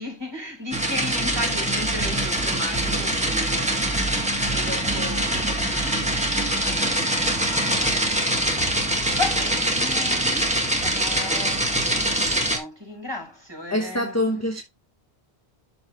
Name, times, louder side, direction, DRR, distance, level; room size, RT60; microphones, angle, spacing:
voice 1, 0.0-14.6, left 2 dB, 25° right, 4.8 m, -36 dB
sound 1, 0.7-12.6, right 1 dB, 5° right, 1.8 m, -24 dB
voice 2, 13.7-14.6, left 1 dB, 15° left, 1.0 m, -24 dB
12.0 x 4.1 x 3.1 m
omnidirectional pair, 1.0 m